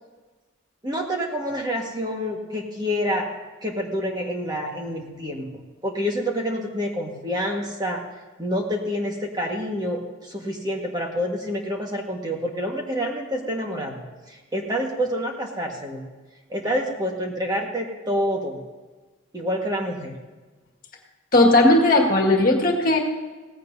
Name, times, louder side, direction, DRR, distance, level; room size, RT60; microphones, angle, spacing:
voice 1, 0.8-3.3 3.6-8.0 8.4-14.0 14.3-16.0 16.5-18.6 19.3-20.1, equal, 20° right, 0 dB, 1.6 m, -27 dB
voice 2, 21.3-23.0, left 2 dB, 40° left, 1 dB, 1.9 m, -17 dB
17.5 x 15.5 x 2.8 m, 1.3 s
head